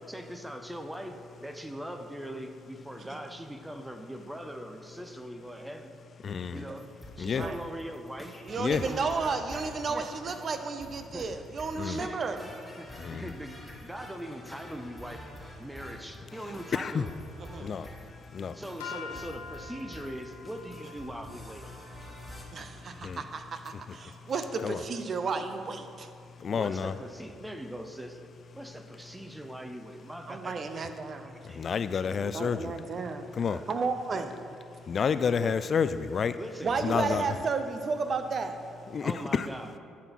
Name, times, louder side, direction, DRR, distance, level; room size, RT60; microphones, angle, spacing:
voice 1, 0.1-6.0 6.5-9.4 9.9-10.1 11.1-11.3 11.8-12.4 12.8-15.3 15.6-17.1 18.5-21.7 26.5-28.2 28.5-30.9 31.3-31.7 33.0-33.1 33.5-33.7 34.1-34.3 35.4-35.6 36.4-37.2 39.0-39.7, equal, 10° right, 6 dB, 0.6 m, -41 dB
voice 2, 6.2-6.6 7.2-7.5 8.6-8.8 11.8-12.1 13.0-13.2 16.7-17.0 17.6-17.9 18.3-18.6 23.0-23.2 24.6-24.8 26.4-26.9 31.4-32.8 33.4-33.6 34.9-36.4 36.8-37.2 38.9-39.5, left 6 dB, 50° left, 13 dB, 0.3 m, -29 dB
sound 1, 6.8-22.4, equal, 5° left, 1.6 m, -47 dB
voice 3, 8.4-12.4 17.5-17.8 18.9-19.0 22.5-26.1 30.3-31.3 32.2-33.3 33.7-34.3 36.6-38.6, right 4 dB, 50° right, 8 dB, 0.7 m, -33 dB
sound 2, 18.8-25.1, left 5 dB, 90° left, 0.7 m, -48 dB
9.4 x 4.3 x 5.8 m, 2.4 s
hypercardioid pair, 55°, 0 cm